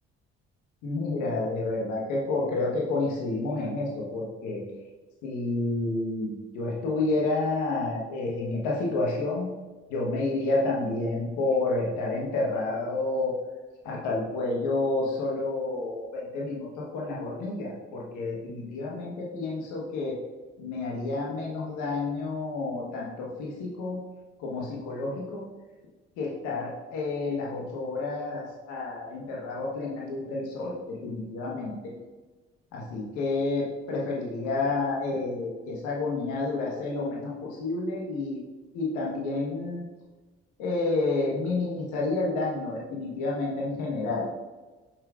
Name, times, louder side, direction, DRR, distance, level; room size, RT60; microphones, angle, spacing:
voice 1, 0.8-4.6 5.2-9.5 9.9-13.4 13.8-20.2 20.6-24.0 24.4-25.4 26.2-31.9 32.7-38.4 38.7-39.9 40.6-44.3, left 2 dB, 80° left, -3 dB, 1.2 m, -30 dB
7.3 x 6.8 x 2.4 m, 1.2 s
hypercardioid pair, 50°, 30 cm